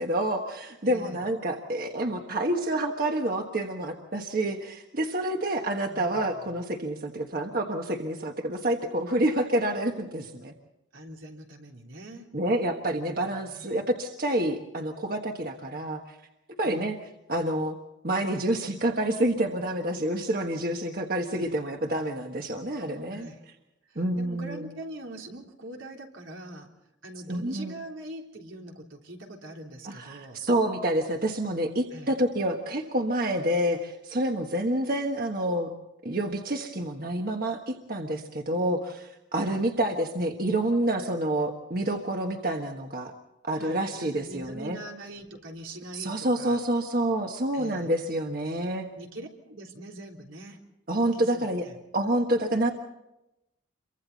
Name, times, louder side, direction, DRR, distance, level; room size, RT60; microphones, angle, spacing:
voice 1, 0.0-10.5 12.3-16.2 16.6-16.9 17.3-17.8 18.0-23.3 23.9-24.6 27.3-27.7 29.8-35.7 36.0-43.1 43.4-44.8 45.9-48.9 50.9-51.6 51.9-52.7, right 1 dB, 45° right, 3 dB, 1.4 m, -28 dB
voice 2, 0.8-1.3 5.9-6.3 10.9-12.3 13.1-13.8 16.6-16.9 21.3-21.6 23.1-23.4 23.8-26.7 27.0-30.4 31.9-32.1 39.4-39.6 43.5-46.6 47.5-47.9 48.9-50.6 50.9-51.8, right 1 dB, 85° right, 0 dB, 3.5 m, -43 dB
28.5 x 24.0 x 4.1 m, 0.91 s
head